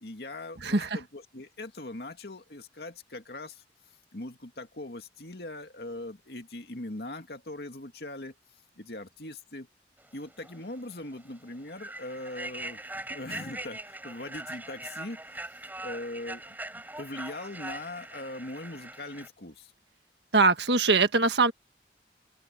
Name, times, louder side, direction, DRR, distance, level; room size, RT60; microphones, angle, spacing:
voice 1, 0.0-3.6 4.1-8.3 8.8-9.7 10.1-12.8 13.1-15.2 15.8-19.7, left 2 dB, 65° left, 2.3 m, -40 dB
voice 2, 0.6-1.0 20.3-21.5, right 3 dB, 80° right, 1.7 m, -22 dB
Human voice / Train, 10.4-10.6 11.0-11.2 11.7-19.3, right 2 dB, 10° right, 6.0 m, -41 dB
open air
head